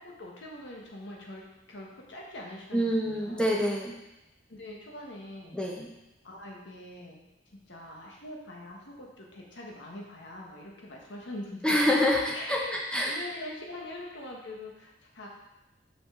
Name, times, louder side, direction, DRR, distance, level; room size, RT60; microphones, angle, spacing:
voice 1, 0.0-3.5 4.5-5.6 6.2-7.2 7.7-12.0 12.3-15.3, left 1 dB, 75° left, -1 dB, 1.3 m, -43 dB
voice 2, 2.7-4.0 5.5-5.9 11.6-13.2, left 1 dB, 5° left, -3 dB, 0.8 m, -26 dB
5.9 x 5.3 x 3.7 m, 0.96 s
head